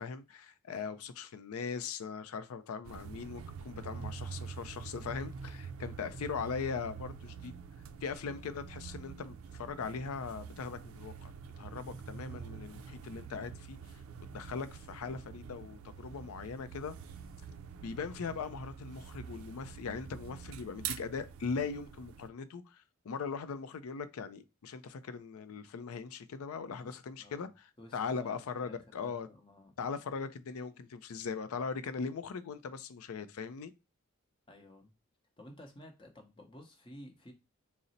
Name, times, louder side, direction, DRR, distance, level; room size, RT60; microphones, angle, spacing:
voice 1, 0.0-7.5 8.0-11.3 11.6-13.8 14.2-16.9 17.7-27.7 27.9-29.3 29.8-33.7, left 5 dB, 80° left, 0.4 m, -40 dB
sound 1, 2.8-22.3, right 6 dB, 75° right, 0.4 m, -46 dB
voice 2, 27.2-27.5 27.8-29.7 34.5-34.9 35.4-37.3, left 1 dB, 20° left, 0.7 m, -53 dB
3.9 x 2.0 x 3.9 m
head